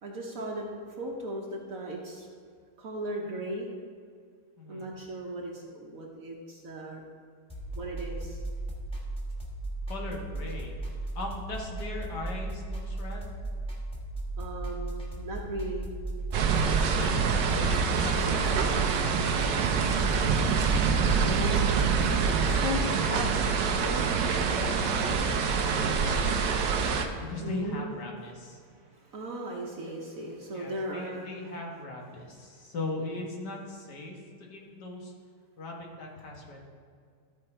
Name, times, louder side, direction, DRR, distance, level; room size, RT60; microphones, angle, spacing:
voice 1, 0.0-2.3 2.8-3.7 4.7-7.0 7.8-8.4 14.4-15.9 21.0-21.8 26.6-28.0 28.7-31.3, right 1 dB, 60° right, -1 dB, 1.2 m, -38 dB
voice 2, 4.6-4.9 9.9-10.7 11.2-13.3 16.9-21.5 22.1-26.8 27.2-28.6 30.5-34.2 34.5-35.1 35.6-36.7, left 2 dB, 75° left, 0 dB, 1.9 m, -39 dB
sound 1, 7.5-22.7, right 2 dB, 5° left, 1.3 m, -36 dB
sound 2, 16.3-27.1, right 6 dB, 90° right, 1.3 m, -26 dB
13.5 x 4.6 x 4.4 m, 2.1 s
omnidirectional pair, 1.8 m